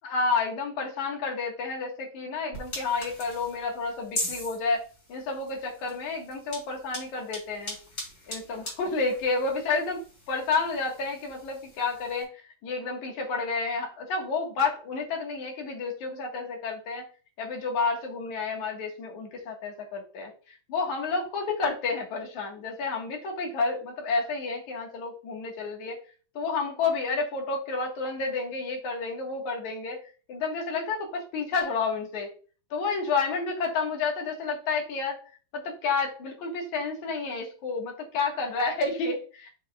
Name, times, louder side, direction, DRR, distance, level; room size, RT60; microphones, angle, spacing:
voice 1, 0.0-4.8 5.1-7.8 8.3-12.3 12.6-17.0 17.4-26.0 26.3-30.0 30.3-32.3 32.7-35.2 35.5-39.5, left 4 dB, 60° left, 0 dB, 2.9 m, -30 dB
sound 1, 2.5-12.2, left 1 dB, 25° left, 4.2 m, -40 dB
8.1 x 7.1 x 2.5 m, 0.37 s
omnidirectional pair, 4.3 m